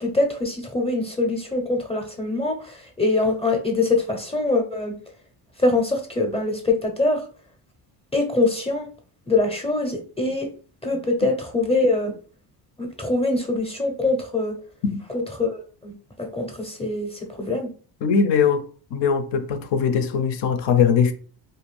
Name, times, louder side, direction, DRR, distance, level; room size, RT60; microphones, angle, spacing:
voice 1, 0.0-4.9 5.6-7.2 8.1-8.9 9.3-10.5 10.8-12.1 12.8-14.5 15.1-17.7, left 2 dB, 15° left, 0.6 m, -23 dB
voice 2, 18.0-21.1, left 6 dB, 60° left, 0.6 m, -21 dB
2.5 x 2.3 x 3.2 m
cardioid pair, 100°, 48 cm